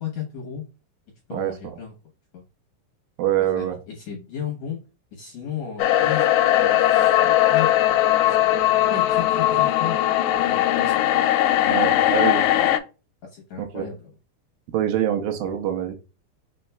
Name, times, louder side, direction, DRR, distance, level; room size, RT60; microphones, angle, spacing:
voice 1, 0.0-0.6 1.3-1.9 2.3-2.4 3.4-4.8 5.1-6.2 6.5-7.7 8.2-8.6 8.9-10.0 10.5-11.0 11.6-12.1 12.5-12.8 13.2-14.1, left 8 dB, 70° left, -2 dB, 1.7 m, -34 dB
voice 2, 1.3-1.8 3.2-3.8 11.7-12.5 13.6-13.9 14.7-15.9, right 11 dB, 80° right, 5 dB, 2.4 m, -25 dB
sound 1, 5.8-12.8, left 13 dB, 90° left, 2.4 m, -19 dB
5.3 x 4.0 x 2.2 m, 0.32 s
omnidirectional pair, 4.3 m